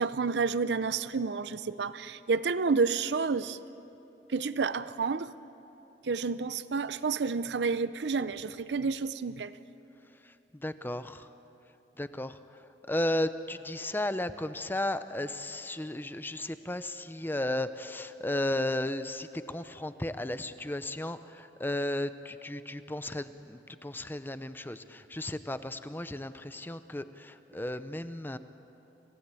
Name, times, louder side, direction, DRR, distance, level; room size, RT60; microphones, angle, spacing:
voice 1, 0.0-3.6 4.3-5.3 6.0-9.5, right 4 dB, 75° right, 14 dB, 0.6 m, -30 dB
voice 2, 10.2-11.3 12.0-28.4, left 1 dB, 10° left, 12 dB, 0.7 m, -34 dB
26.5 x 16.5 x 8.4 m, 3.0 s
head